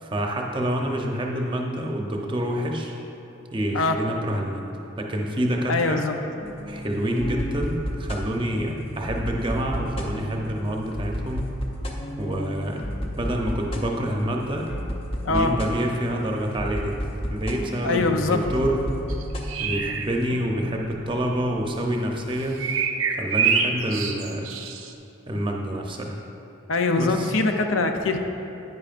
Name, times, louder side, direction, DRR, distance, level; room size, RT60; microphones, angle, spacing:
voice 1, 0.0-3.0 3.5-4.6 5.0-6.0 6.7-11.5 12.2-12.8 13.2-14.7 15.3-17.0 17.3-18.8 19.6-22.6 23.1-24.5 25.3-26.1 27.0-27.3, equal, 25° right, 0 dB, 0.7 m, -27 dB
voice 2, 5.7-6.2 15.3-15.5 17.8-18.5 26.7-28.2, left 3 dB, 75° left, 5 dB, 0.6 m, -23 dB
sound 1, 6.4-22.7, equal, 30° left, 0.7 m, -33 dB
sound 2, 19.1-20.1 22.6-24.9, right 6 dB, 75° right, 0.6 m, -25 dB
10.5 x 9.4 x 2.5 m, 2.8 s
head